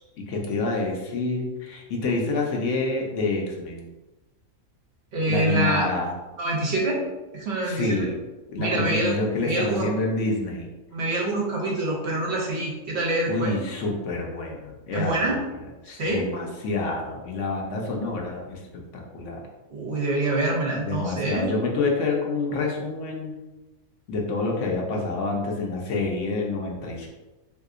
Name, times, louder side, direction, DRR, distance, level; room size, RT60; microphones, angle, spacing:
voice 1, 0.3-3.9 5.3-6.1 7.6-8.2 8.5-10.7 13.3-15.3 15.8-18.6 18.9-19.4 20.8-23.4 24.1-27.1, left 3 dB, 70° left, -1 dB, 0.9 m, -27 dB
voice 2, 5.1-5.9 6.4-7.0 7.3-8.1 8.6-9.2 9.4-9.9 10.9-13.6 14.9-15.4 15.9-16.3 19.7-21.5, right 2 dB, 60° right, -2 dB, 0.8 m, -26 dB
3.5 x 2.7 x 2.4 m, 1.1 s
omnidirectional pair, 1.4 m